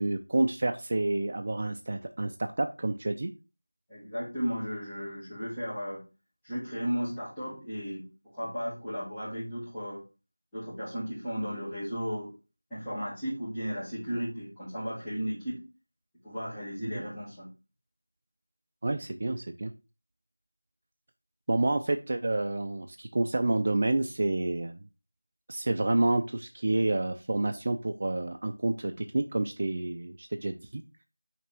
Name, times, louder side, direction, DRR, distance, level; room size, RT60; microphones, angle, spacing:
voice 1, 0.0-3.3 16.9-17.0 18.8-19.7 21.5-24.8 25.5-30.8, right 2 dB, 25° right, 6 dB, 0.3 m, -29 dB
voice 2, 3.9-6.0 6.4-8.1 8.3-10.0 10.5-12.3 12.7-15.7 16.2-17.5, equal, 5° left, -19 dB, 1.4 m, -35 dB
5.9 x 3.3 x 5.8 m, 0.30 s
figure-of-eight pair, 180°, 0 cm